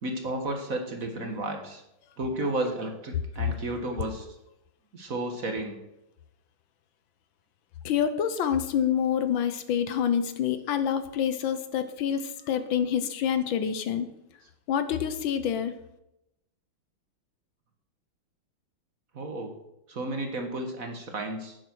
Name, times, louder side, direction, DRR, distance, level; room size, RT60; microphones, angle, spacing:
voice 1, 0.0-1.8 2.2-4.3 4.9-5.8 19.1-19.6 19.9-21.6, right 1 dB, 45° right, 4 dB, 1.6 m, -32 dB
voice 2, 7.8-14.1 14.7-15.7, left 8 dB, 70° left, 10 dB, 1.6 m, -27 dB
11.0 x 9.5 x 6.2 m, 0.87 s
omnidirectional pair, 2.3 m